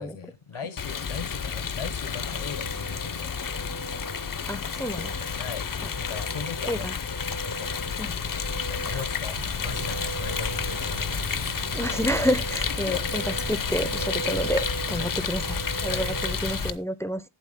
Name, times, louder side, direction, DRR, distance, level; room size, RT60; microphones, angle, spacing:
voice 1, 0.0-3.3 5.4-5.7 5.9-7.2 7.4-7.9 8.7-11.5 12.9-13.0 14.9-15.2 15.9-16.1, left 7 dB, 80° left, 1.3 m, -38 dB
Rain, 0.8-16.7, left 6 dB, 40° left, 0.7 m, -31 dB
sound 1, 2.1-16.3, right 4 dB, 50° right, 0.7 m, -40 dB
voice 2, 4.5-5.1 5.8-5.9 6.7-7.0 8.0-8.2 8.9-9.1 11.7-17.2, equal, 5° left, 0.6 m, -30 dB
sound 2, 9.3-16.8, right 4 dB, 80° right, 2.9 m, -38 dB
12.0 x 8.1 x 3.5 m
wide cardioid pair, 105°, 50 cm